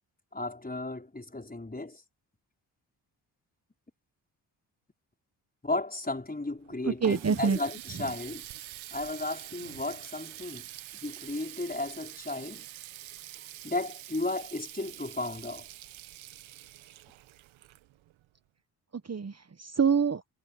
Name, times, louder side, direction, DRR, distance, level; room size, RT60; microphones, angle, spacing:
voice 1, 0.3-2.0 5.6-8.5 8.9-10.7 11.0-12.7 13.4-15.7, left 2 dB, 20° left, 5.4 m, -34 dB
Water tap faucet, 6.6-18.3, right 14 dB, 75° right, 1.4 m, -46 dB
voice 2, 6.9-7.6 7.9-8.0 18.9-20.3, right 6 dB, 35° right, 1.4 m, -27 dB
supercardioid pair, 45°, 47 cm